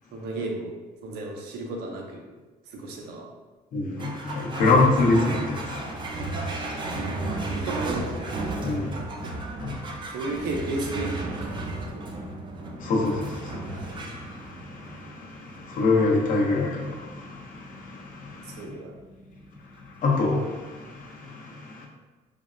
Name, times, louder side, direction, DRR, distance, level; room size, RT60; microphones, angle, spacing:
voice 1, 0.1-0.7 1.0-2.2 2.7-3.3 7.3-8.2 8.5-8.6 9.1-9.3 10.1-11.2 11.9-12.0 18.2-18.9, right 2 dB, 80° right, 1 dB, 0.6 m, -33 dB
voice 2, 3.7-7.4 8.6-8.9 9.6-9.8 12.8-18.6 20.0-21.9, left 3 dB, 50° left, -1 dB, 0.6 m, -26 dB
sound 1, 4.0-20.7, right 2 dB, 30° right, 0.4 m, -35 dB
3.3 x 2.0 x 2.4 m, 1.2 s
cardioid pair, 110°, 17 cm